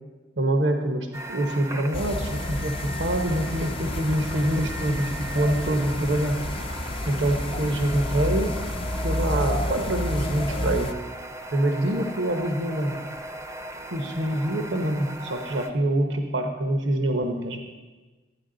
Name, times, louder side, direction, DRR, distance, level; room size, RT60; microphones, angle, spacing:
voice 1, 0.4-6.4 7.1-8.5 9.0-11.0 11.5-13.0 13.9-17.6, right 1 dB, 70° right, 5 dB, 0.9 m, -25 dB
sound 1, 1.1-15.7, right 1 dB, 15° right, 0.6 m, -38 dB
sound 2, 1.9-10.9, left 1 dB, 30° left, 0.5 m, -30 dB
12.5 x 9.4 x 3.8 m, 1.3 s
head